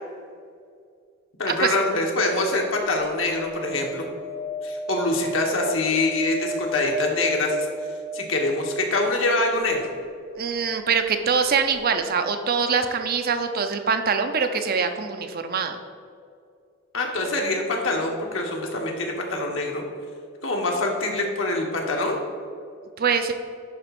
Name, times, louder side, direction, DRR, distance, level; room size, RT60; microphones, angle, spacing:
voice 1, 1.4-4.0 4.6-7.6 8.1-9.9 16.9-19.8 20.4-22.2, left 2 dB, 70° left, 1 dB, 1.4 m, -24 dB
sound 1, 3.0-9.2 11.4-11.5 11.7-11.8, equal, 65° right, 1.5 m, -33 dB
voice 2, 10.4-15.8 23.0-23.3, right 5 dB, 50° right, 7 dB, 0.6 m, -24 dB
10.5 x 3.6 x 5.9 m, 2.2 s
head